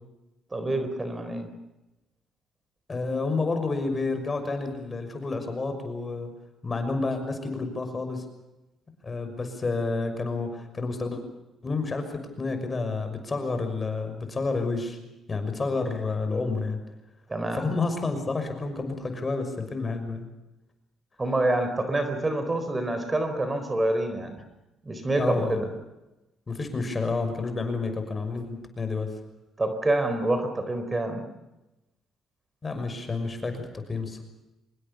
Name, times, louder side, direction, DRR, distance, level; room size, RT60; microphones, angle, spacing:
voice 1, 0.5-1.5 17.3-17.7 21.2-24.4 24.8-25.7 29.6-31.3, right 2 dB, 20° right, 8 dB, 4.3 m, -27 dB
voice 2, 2.9-6.3 6.6-8.2 9.0-11.2 11.6-15.0 15.3-16.8 17.5-20.2 25.2-25.6 26.5-29.1 32.6-34.2, left 3 dB, 30° left, 7 dB, 6.1 m, -30 dB
25.5 x 21.0 x 7.1 m, 0.98 s
cardioid pair, 80°, 0 cm